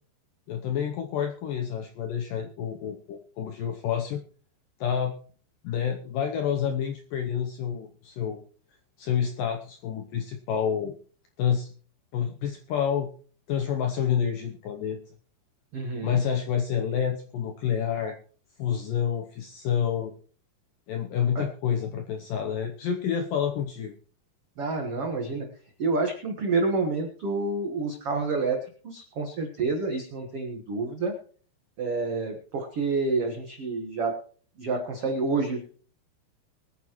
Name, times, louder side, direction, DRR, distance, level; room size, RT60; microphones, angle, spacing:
voice 1, 0.5-4.2 4.8-5.1 5.6-8.4 9.0-10.9 11.4-11.7 12.1-13.1 13.5-15.1 16.0-18.2 18.6-20.1 20.9-24.0, left 8 dB, 80° left, 5 dB, 1.9 m, -28 dB
voice 2, 15.7-16.2 21.3-21.4 24.6-25.5 25.8-28.6 28.8-31.1 31.8-34.2 34.6-35.7, right 3 dB, 85° right, 3 dB, 1.3 m, -28 dB
22.5 x 9.4 x 3.1 m, 0.42 s
omnidirectional pair, 5.0 m